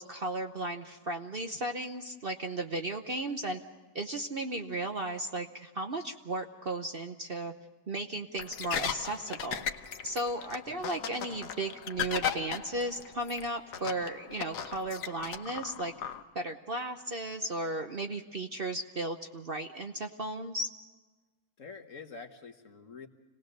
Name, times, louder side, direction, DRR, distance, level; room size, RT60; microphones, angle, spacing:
voice 1, 0.0-3.6 3.9-7.5 7.9-9.6 10.0-15.9 16.3-20.7, right 1 dB, 45° right, 5 dB, 0.9 m, -35 dB
sound 1, 8.4-16.2, left 8 dB, 85° left, 1.5 m, -37 dB
voice 2, 21.6-23.1, left 5 dB, 55° left, 6 dB, 1.7 m, -47 dB
27.0 x 18.5 x 6.7 m, 1.3 s
omnidirectional pair, 1.7 m